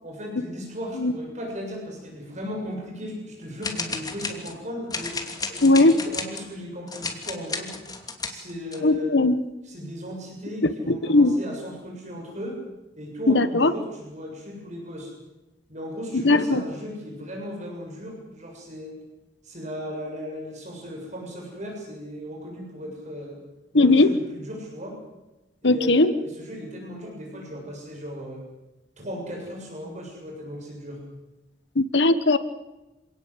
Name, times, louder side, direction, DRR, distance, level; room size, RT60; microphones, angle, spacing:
voice 1, 0.0-5.1 5.4-7.8 8.3-9.2 9.6-12.6 13.0-15.1 15.7-18.9 19.4-23.4 23.7-25.0 25.6-28.4 29.0-31.0, equal, 40° right, 0 dB, 7.2 m, -36 dB
sound 1, 3.6-4.6 4.9-6.5 6.9-8.8, left 4 dB, 20° left, 2.8 m, -33 dB
voice 2, 5.6-6.0 8.8-9.4 10.9-11.3 13.3-13.7 16.2-16.6 23.7-24.1 25.6-26.1 31.8-32.4, left 2 dB, 75° left, 12 dB, 1.2 m, -18 dB
27.0 x 18.5 x 8.1 m, 1.0 s
head